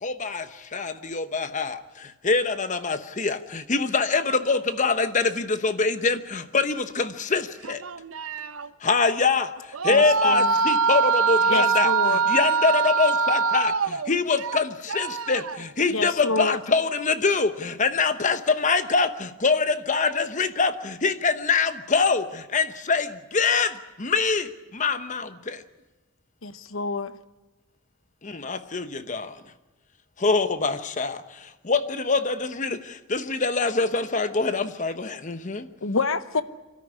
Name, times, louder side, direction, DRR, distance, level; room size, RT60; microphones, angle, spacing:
voice 1, 0.0-7.8 8.8-13.7 14.1-25.6 28.2-29.4 30.2-35.7, left 4 dB, 35° left, 1.0 m, -24 dB
voice 2, 7.6-8.7 9.7-14.6 14.9-15.6, right 5 dB, 80° right, 0.9 m, -24 dB
voice 3, 9.9-10.5 11.5-12.2 15.9-16.6 26.4-27.2 35.8-36.4, left 3 dB, 75° left, 0.9 m, -27 dB
24.5 x 13.5 x 9.8 m
head